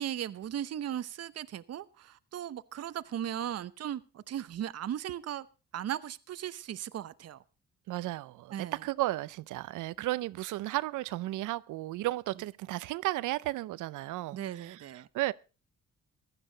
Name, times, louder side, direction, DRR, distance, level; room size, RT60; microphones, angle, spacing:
voice 1, 0.0-5.5 5.7-7.4 8.5-8.8 14.3-15.1, right 10 dB, 55° right, 0.8 m, -37 dB
voice 2, 7.9-15.3, right 17 dB, 85° right, 0.6 m, -34 dB
15.5 x 12.5 x 3.9 m
cardioid pair, 90°, 30 cm